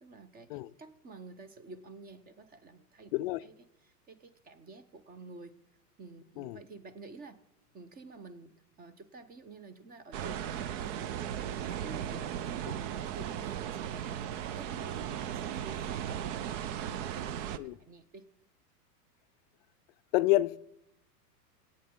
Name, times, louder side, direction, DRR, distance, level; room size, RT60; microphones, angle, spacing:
voice 1, 0.0-3.1 3.4-5.6 6.0-7.4 7.7-12.6 13.1-16.4 16.8-18.3, right 3 dB, 20° right, 0.8 m, -50 dB
sound 1, 10.1-17.6, right 10 dB, 50° right, 0.8 m, -36 dB
voice 2, 20.1-20.6, left 17 dB, 40° left, 0.5 m, -28 dB
22.5 x 8.7 x 3.8 m
hypercardioid pair, 120°, 48 cm